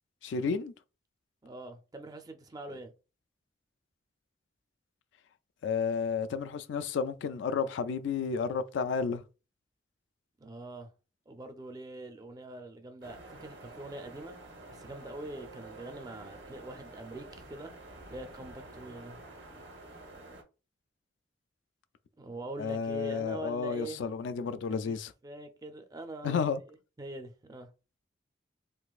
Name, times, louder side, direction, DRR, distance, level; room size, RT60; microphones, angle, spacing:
voice 1, 0.2-0.7 5.6-9.2 22.6-25.1 26.2-26.6, left 5 dB, 80° left, 0.3 m, -31 dB
voice 2, 1.4-2.9 10.4-10.9 11.3-14.4 14.7-17.7 18.1-19.2 22.2-24.0 24.8-24.9 25.2-26.4 27.0-27.7, right 1 dB, 20° right, 0.4 m, -43 dB
sound 1, 13.0-20.4, right 2 dB, 70° right, 0.9 m, -49 dB
3.9 x 2.5 x 2.3 m
head